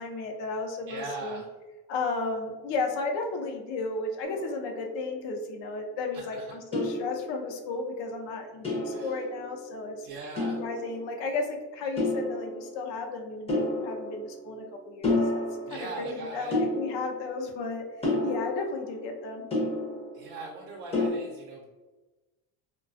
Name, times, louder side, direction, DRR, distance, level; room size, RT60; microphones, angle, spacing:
voice 1, 0.0-1.4 1.9-10.1 10.6-15.4 15.7-17.8 18.2-19.5, left 3 dB, 65° left, 3 dB, 0.6 m, -34 dB
voice 2, 0.9-1.5 6.1-6.5 8.9-9.2 10.0-10.6 15.7-16.6 20.1-21.6, right 3 dB, 70° right, -1 dB, 0.6 m, -40 dB
sound 1, 4.2-5.2 6.7-7.8 8.6-9.9 10.4-11.3 12.0-13.0 13.5-14.7 15.0-16.1 16.5-17.5 18.0-20.4 20.9-21.1, left 2 dB, 15° left, 0.5 m, -31 dB
2.3 x 2.2 x 2.5 m, 1.2 s
cardioid pair, 110°, 48 cm